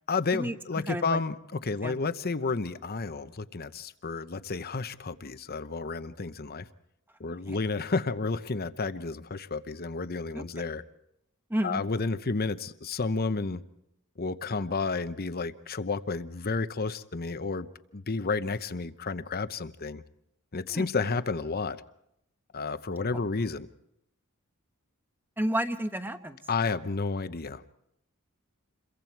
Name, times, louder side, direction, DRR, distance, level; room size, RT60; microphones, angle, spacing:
voice 1, 0.1-6.7 7.2-10.8 11.6-13.6 14.2-20.0 20.5-21.8 22.5-23.7 26.5-27.6, left 4 dB, 45° left, 0.9 m, -31 dB
voice 2, 0.9-1.2 1.8-2.0 7.5-7.6 10.3-10.4 11.5-11.8 20.7-20.9 25.4-26.4, right 1 dB, 10° right, 1.2 m, -31 dB
28.5 x 22.5 x 4.6 m
head